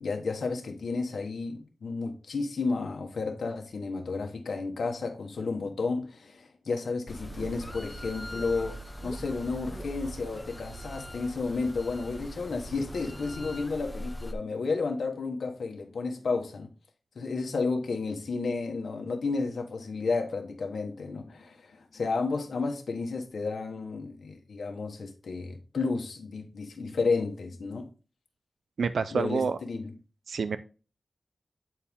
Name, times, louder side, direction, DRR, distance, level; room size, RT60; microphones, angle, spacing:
voice 1, 0.0-8.8 9.0-16.7 17.1-27.9 29.1-29.8, left 4 dB, 85° left, 1.2 m, -32 dB
sound 1, 7.1-14.3, equal, 15° left, 0.6 m, -41 dB
voice 2, 28.8-29.6 30.3-30.6, right 5 dB, 85° right, 0.4 m, -28 dB
8.5 x 4.5 x 3.5 m
wide cardioid pair, 90°, 0 cm